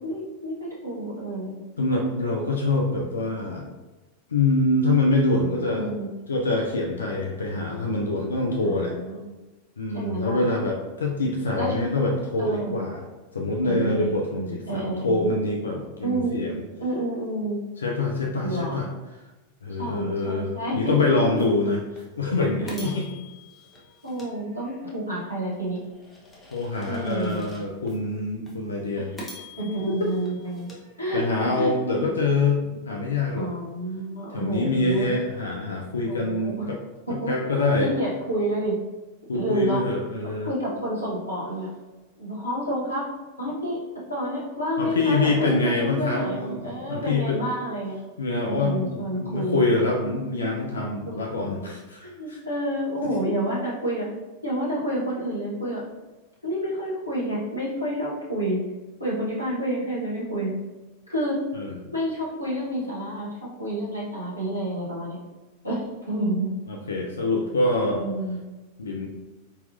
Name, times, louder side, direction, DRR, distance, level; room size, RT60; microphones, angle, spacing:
voice 1, 0.0-1.6 5.6-6.1 8.6-9.3 9.9-10.4 11.6-11.7 12.4-12.8 13.6-15.3 16.0-16.4 16.8-17.6 18.3-18.9 19.8-21.2 22.6-23.1 24.0-25.8 26.8-27.5 29.6-30.7 31.0-32.1 33.3-35.1 36.1-36.7 37.2-37.4 37.8-38.7 39.3-39.8 40.4-41.7 42.2-43.0 43.4-43.8 44.1-47.9 48.5-49.7 51.0-51.2 52.0-54.1 54.4-55.8 56.4-58.6 59.0-60.6 61.1-61.4 61.9-63.3 63.6-65.2 65.6-65.8 66.1-66.5 67.9-68.4, right 1 dB, 90° left, -8 dB, 1.3 m, -29 dB
voice 2, 1.8-3.6 4.3-5.9 6.3-9.0 9.8-13.0 13.3-16.6 17.8-18.9 19.6-21.8 22.2-23.1 26.5-29.1 29.9-30.0 31.1-33.5 34.3-36.8 37.1-37.9 39.3-40.5 44.8-47.4 48.2-52.4 61.5-61.8 66.7-68.0 68.8-69.1, left 2 dB, 70° left, 0 dB, 0.5 m, -25 dB
sound 1, 21.4-21.5 22.0-22.1 22.7-25.0 25.5-28.0 28.5-28.6 29.2-31.5, equal, 10° left, 1.0 m, -45 dB
4.1 x 3.9 x 2.6 m, 1.1 s
figure-of-eight pair, 90°, 0 cm